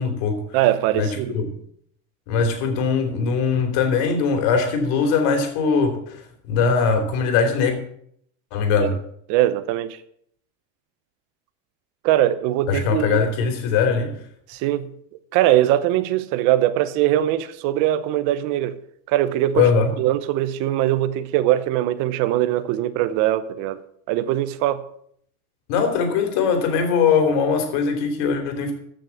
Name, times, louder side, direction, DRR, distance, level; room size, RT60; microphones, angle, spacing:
voice 1, 0.0-0.4 1.0-1.5 2.3-7.8 8.5-8.9 12.7-14.1 19.5-19.9 25.7-28.7, left 5 dB, 65° left, 3.2 m, -21 dB
voice 2, 0.5-1.3 8.8-8.9 9.3-10.0 12.0-13.2 14.5-14.9 15.3-18.8 19.1-19.7 20.0-23.8 24.1-24.9, right 13 dB, 50° right, 0.9 m, -21 dB
14.5 x 6.4 x 7.2 m
cardioid pair, 175°, 38 cm